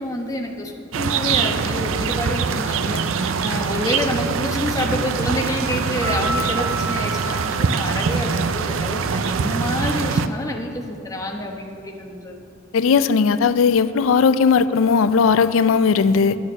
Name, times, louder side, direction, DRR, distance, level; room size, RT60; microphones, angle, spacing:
voice 1, 0.0-12.4, left 1 dB, 15° left, 1 dB, 1.0 m, -28 dB
sound 1, 0.9-10.3, right 5 dB, 85° right, 0.5 m, -23 dB
Piano, 6.0-8.6, right 2 dB, 10° right, 2.2 m, -30 dB
voice 2, 12.7-16.4, left 5 dB, 85° left, 14 dB, 0.4 m, -17 dB
9.3 x 8.6 x 6.2 m, 2.7 s
head